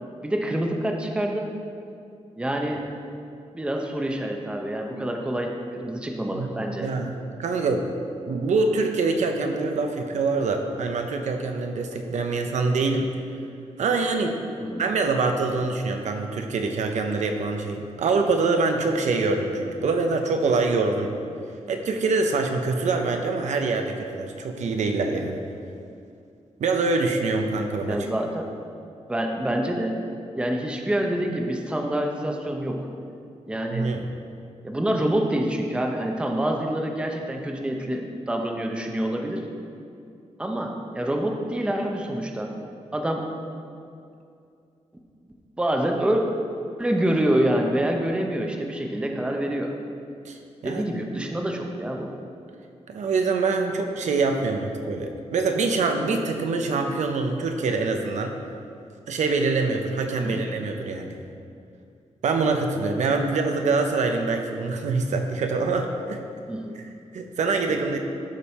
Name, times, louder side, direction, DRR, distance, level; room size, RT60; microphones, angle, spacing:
voice 1, 0.2-1.5 2.4-2.9 3.5-6.9 14.6-14.8 27.9-28.5 29.1-30.0 30.4-32.9 33.5-33.9 34.6-39.5 40.4-42.5 42.9-43.2 45.6-46.2 46.8-49.7 50.6-52.2 60.2-60.4 66.5-66.7, right 1 dB, 10° right, 2 dB, 0.6 m, -26 dB
voice 2, 6.8-7.9 8.3-13.1 13.8-14.4 14.8-21.1 21.7-25.4 26.6-28.1 33.7-34.1 50.2-50.4 50.6-50.8 52.9-58.3 59.1-61.2 62.2-66.2 67.1-68.0, right 3 dB, 75° right, 4 dB, 0.8 m, -25 dB
12.0 x 5.4 x 4.2 m, 2.5 s
wide cardioid pair, 180°, 12 cm